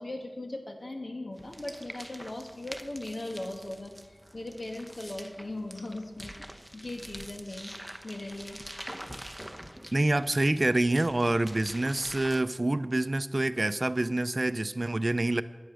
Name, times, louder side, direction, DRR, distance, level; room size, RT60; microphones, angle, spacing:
voice 1, 0.0-7.7 8.0-8.6, left 1 dB, 70° left, 3 dB, 1.9 m, -39 dB
sound 1, 1.4-12.4, equal, 5° right, 0.9 m, -45 dB
voice 2, 9.9-15.4, right 2 dB, 50° right, 13 dB, 0.5 m, -27 dB
13.5 x 10.0 x 6.4 m, 1.3 s
wide cardioid pair, 55°, 0 cm